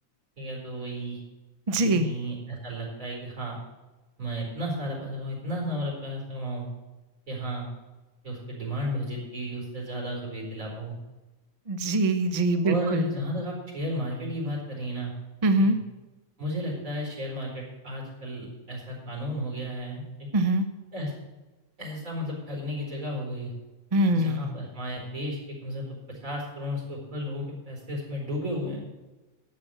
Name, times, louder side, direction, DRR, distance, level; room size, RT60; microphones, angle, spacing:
voice 1, 0.4-1.2 1.8-3.6 4.2-6.6 7.3-7.7 8.2-11.0 12.6-15.1 16.4-20.3 20.9-21.1 21.8-23.5 24.1-28.8, equal, 75° right, -2 dB, 4.8 m, -33 dB
voice 2, 1.7-2.1 11.7-13.1 15.4-15.8 20.3-20.7 23.9-24.5, right 1 dB, 30° right, 9 dB, 0.8 m, -23 dB
11.0 x 7.8 x 7.6 m, 1.1 s
omnidirectional pair, 1.5 m